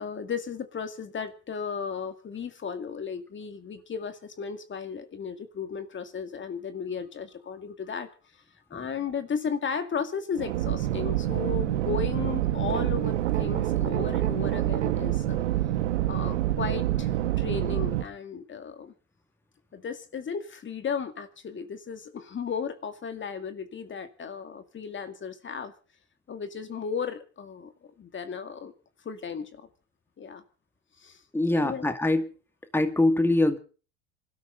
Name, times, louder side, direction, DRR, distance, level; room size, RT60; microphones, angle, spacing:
voice 1, 0.0-8.1 8.7-15.4 16.1-18.9 19.7-25.7 26.3-28.7 29.0-29.7 30.2-30.4 31.0-31.2 31.5-31.9, left 6 dB, 35° left, 10 dB, 2.2 m, -35 dB
sound 1, 10.4-18.0, right 13 dB, 85° right, 1.5 m, -27 dB
voice 2, 31.3-32.3 32.7-33.6, left 2 dB, 5° left, 9 dB, 2.1 m, -23 dB
26.0 x 13.0 x 3.9 m, 0.37 s
hypercardioid pair, 85°, 35 cm